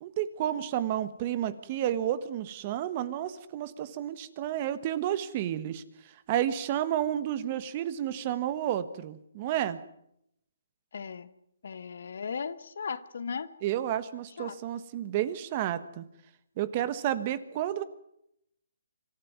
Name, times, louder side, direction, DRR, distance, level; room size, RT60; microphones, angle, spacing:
voice 1, 0.0-5.8 6.3-9.8 13.6-16.0 16.6-17.8, right 11 dB, 30° right, 15 dB, 1.4 m, -31 dB
voice 2, 10.9-11.3 11.6-13.5 14.4-14.6, left 6 dB, 65° left, 14 dB, 1.4 m, -36 dB
25.5 x 14.0 x 9.4 m, 0.77 s
hypercardioid pair, 160°, 0 cm